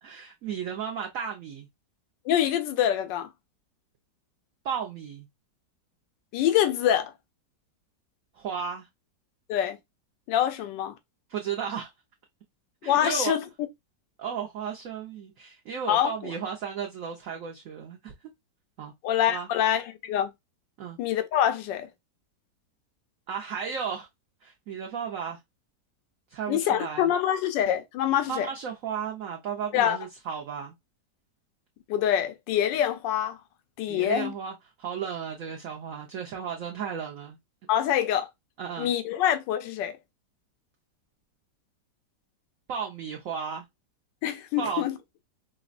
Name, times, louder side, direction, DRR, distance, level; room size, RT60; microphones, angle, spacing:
voice 1, 0.0-1.7 4.6-5.3 8.3-8.9 11.3-11.9 12.8-13.4 14.2-18.1 18.8-18.9 19.3-19.5 20.8-21.0 23.3-24.1 24.4-25.4 26.3-27.1 28.3-30.7 33.9-37.4 38.6-38.9 42.7-43.6 44.6-44.9, right 7 dB, 65° right, 0.9 m, -34 dB
voice 2, 2.3-3.3 6.3-7.1 9.5-9.8 10.3-10.9 12.8-13.4 15.9-16.3 19.0-20.3 21.0-21.9 26.5-28.5 29.7-30.0 31.9-33.4 33.8-34.3 37.7-38.3 38.8-40.0 44.2-44.9, left 10 dB, 90° left, 1.3 m, -25 dB
4.9 x 2.1 x 2.4 m
omnidirectional pair, 1.9 m